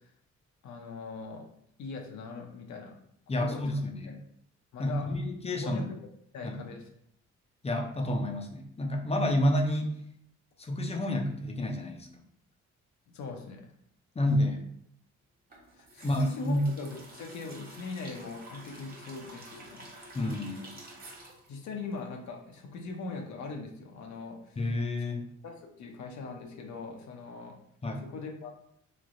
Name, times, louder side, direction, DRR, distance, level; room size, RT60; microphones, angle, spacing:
voice 1, 0.6-1.4 1.8-2.9 3.4-3.8 4.1-4.2 4.7-5.2 5.6-6.0 6.3-6.9 13.1-13.7 15.8-19.9 21.5-24.6 25.4-27.6 28.0-28.5, left 3 dB, 65° left, 2 dB, 0.7 m, -41 dB
voice 2, 3.3-4.2 4.8-5.8 6.4-6.6 7.6-9.9 10.6-12.1 14.2-14.6 16.0-16.6 20.1-20.8 24.6-25.2 27.8-28.0, left 1 dB, 20° left, 2 dB, 0.5 m, -29 dB
sound 1, 15.5-22.5 22.8-22.9, right 1 dB, 30° right, 0.9 m, -50 dB
3.2 x 2.9 x 2.6 m, 0.70 s
cardioid pair, 90°, 30 cm